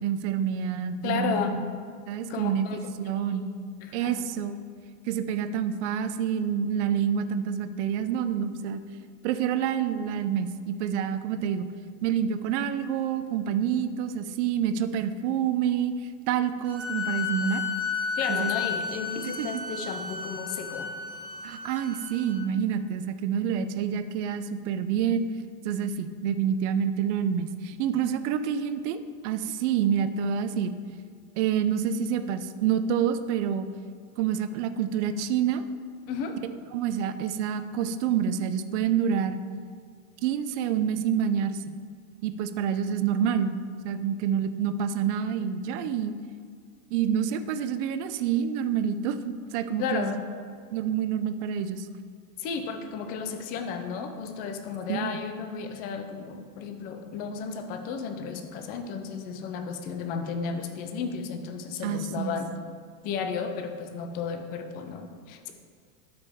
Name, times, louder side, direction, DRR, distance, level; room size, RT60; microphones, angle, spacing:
voice 1, 0.0-1.5 2.1-3.5 3.9-4.6 5.1-8.8 9.2-11.7 12.0-15.9 16.3-17.6 18.3-18.5 19.4-19.6 21.4-25.2 25.6-30.7 31.4-33.7 34.2-35.6 36.7-39.4 40.2-41.8 42.2-43.6 43.8-46.1 46.9-50.1 50.7-51.9 54.9-55.2 61.8-62.4, right 8 dB, 50° right, 11 dB, 0.6 m, -27 dB
voice 2, 1.0-1.6 2.3-2.8 3.8-4.3 18.2-20.9 36.1-36.4 41.3-41.4 49.8-50.2 52.4-62.5 63.0-65.5, left 6 dB, 20° left, 6 dB, 0.4 m, -33 dB
sound 1, 16.6-22.3, left 6 dB, 30° right, 2.0 m, -33 dB
12.5 x 5.1 x 3.5 m, 2.1 s
supercardioid pair, 140°, 47 cm